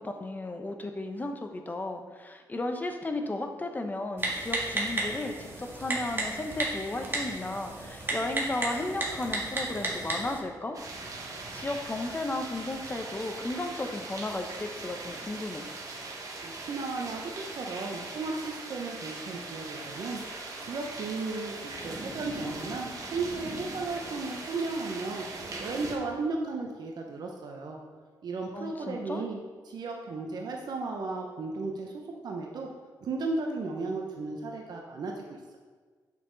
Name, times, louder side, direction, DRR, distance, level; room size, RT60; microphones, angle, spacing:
voice 1, 0.0-10.8 11.5-15.7 28.5-29.3, left 2 dB, 25° left, 5 dB, 0.9 m, -34 dB
Typing, 4.2-10.4, right 2 dB, 30° right, 1.7 m, -33 dB
sound 1, 10.7-26.0, right 2 dB, 50° right, 1.5 m, -40 dB
voice 2, 16.4-20.2 20.6-25.2 25.6-27.8 28.2-32.7 33.0-35.6, right 3 dB, 65° right, 1 dB, 0.9 m, -35 dB
8.1 x 5.9 x 4.0 m, 1.4 s
cardioid pair, 100°, 8 cm